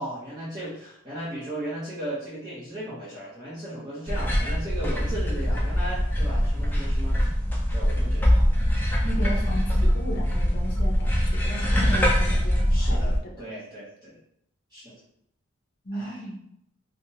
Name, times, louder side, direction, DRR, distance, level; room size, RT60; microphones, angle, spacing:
voice 1, 0.0-7.3 7.7-8.5 9.4-9.5 11.8-12.0 12.7-14.2 14.7-14.9 15.9-16.2, right 1 dB, 20° right, -10 dB, 0.9 m, -36 dB
sound 1, 4.1-13.2, equal, 10° left, 0.4 m, -23 dB
voice 2, 9.0-13.3 15.8-16.4, equal, 50° left, 0 dB, 0.7 m, -35 dB
3.3 x 2.2 x 2.8 m, 0.73 s
head